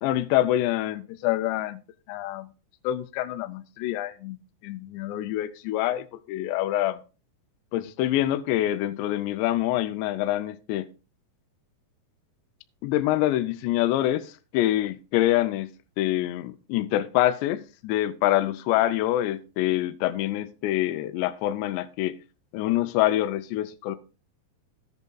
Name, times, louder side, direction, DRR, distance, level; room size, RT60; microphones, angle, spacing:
voice 1, 0.0-1.8 2.1-2.5 2.8-7.0 7.7-10.9 12.8-15.7 16.0-22.2 22.5-24.0, left 14 dB, 80° left, 2.7 m, -26 dB
15.0 x 8.1 x 2.3 m
omnidirectional pair, 5.1 m